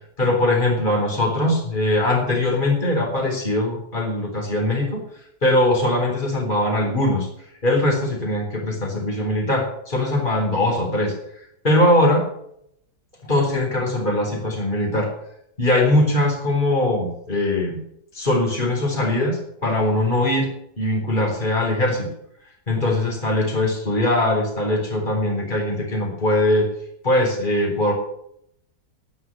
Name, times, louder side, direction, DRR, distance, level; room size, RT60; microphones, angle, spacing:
voice 1, 0.2-5.0 5.4-7.3 7.6-11.1 11.6-12.3 13.3-15.1 15.6-17.8 18.1-20.5 20.8-22.1 22.7-26.7 27.0-27.9, left 1 dB, 25° left, 0 dB, 4.1 m, -21 dB
11.0 x 9.8 x 8.8 m, 0.73 s
omnidirectional pair, 1.9 m